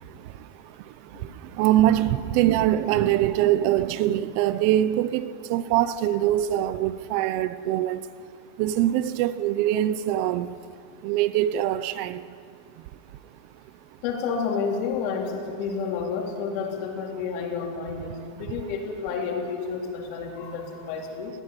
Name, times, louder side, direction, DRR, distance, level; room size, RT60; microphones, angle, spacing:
voice 1, 1.6-8.0 8.6-10.5 11.0-12.2, right 12 dB, 45° right, 0.7 m, -23 dB
voice 2, 14.0-21.3, left 5 dB, 45° left, 3.9 m, -30 dB
19.0 x 16.0 x 9.9 m
supercardioid pair, 175°, 0 cm